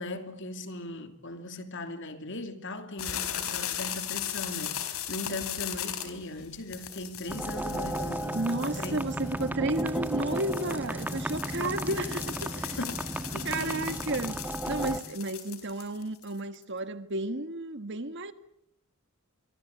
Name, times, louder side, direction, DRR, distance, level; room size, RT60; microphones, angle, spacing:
voice 1, 0.0-9.3 10.9-11.3 11.6-12.0 12.8-13.9, left 2 dB, 55° left, 2.9 m, -39 dB
sound 1, 3.0-16.6, left 10 dB, 75° left, 4.1 m, -38 dB
sound 2, 7.3-15.0, right 1 dB, 10° right, 1.2 m, -34 dB
voice 2, 8.3-12.8 13.4-14.4 14.7-18.3, right 1 dB, 55° right, 1.8 m, -32 dB
26.0 x 24.0 x 8.3 m
head